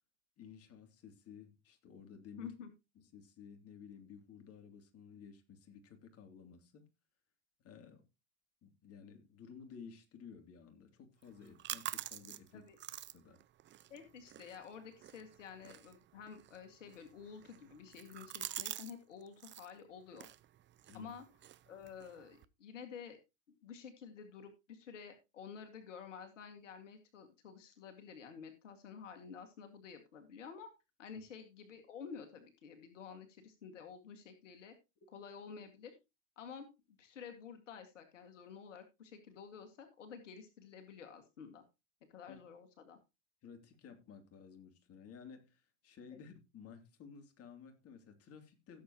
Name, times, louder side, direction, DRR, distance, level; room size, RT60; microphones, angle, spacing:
voice 1, 0.4-2.5 3.0-6.8 7.6-8.0 8.6-12.6 13.1-13.4 20.9-21.2 31.1-31.2 42.3-42.4 43.4-48.8, left 6 dB, 40° left, 2.9 m, -55 dB
voice 2, 2.4-2.7 12.5-12.8 13.9-20.3 20.9-21.2 21.7-23.2 23.5-30.7 31.0-34.7 35.1-36.0 36.4-36.7 37.0-41.6 42.1-43.0 46.1-46.2, left 6 dB, 80° left, 2.1 m, -51 dB
sound 1, 11.2-18.9 19.2-19.7 20.1-22.4, right 12 dB, 30° right, 0.8 m, -48 dB
16.5 x 7.7 x 2.9 m
hypercardioid pair, 90°, 37 cm